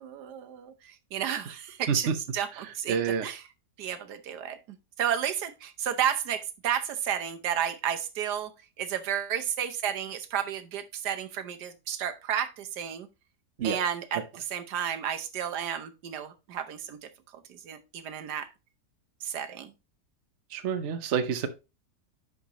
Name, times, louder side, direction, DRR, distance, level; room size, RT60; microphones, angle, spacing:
voice 1, 0.0-3.4 3.8-4.6 5.0-8.5 8.8-13.1 13.6-18.5 19.2-19.7, right 9 dB, 85° right, 1.5 m, -32 dB
voice 2, 2.6-3.3 13.6-13.8 20.5-21.5, right 6 dB, 55° right, 1.0 m, -28 dB
10.5 x 5.1 x 2.9 m
omnidirectional pair, 1.7 m